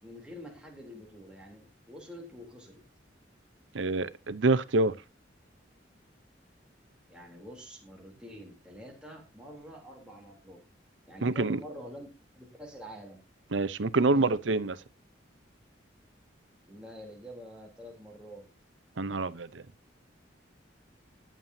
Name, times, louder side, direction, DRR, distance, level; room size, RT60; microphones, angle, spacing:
voice 1, 0.0-2.8 7.1-10.6 11.1-12.1 12.3-13.2 14.0-14.4 16.7-18.5, equal, 5° right, 3.4 m, -46 dB
voice 2, 3.7-4.9 11.2-11.6 13.5-14.7 19.0-19.6, right 3 dB, 85° right, 0.8 m, -26 dB
20.0 x 7.6 x 2.8 m
head